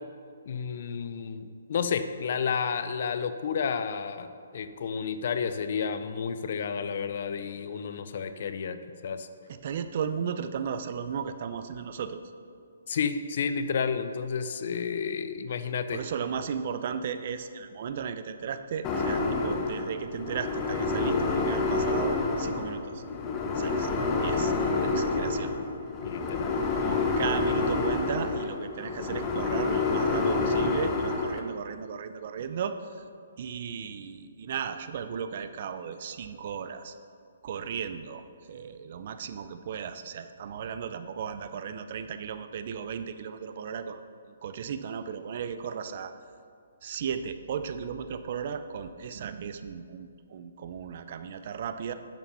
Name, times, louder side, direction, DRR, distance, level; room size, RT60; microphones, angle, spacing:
voice 1, 0.5-9.3 12.9-16.0 26.0-26.6, left 6 dB, 55° left, 10 dB, 0.7 m, -31 dB
voice 2, 9.5-12.2 15.9-23.0 23.5-23.9 24.2-25.5 26.8-33.0 33.4-36.9 37.4-46.1 46.8-51.9, right 7 dB, 45° right, 10 dB, 0.6 m, -35 dB
sound 1, 18.8-31.4, left 3 dB, 20° left, 0.9 m, -28 dB
10.5 x 7.2 x 5.5 m, 2.3 s
hypercardioid pair, 155°, 0 cm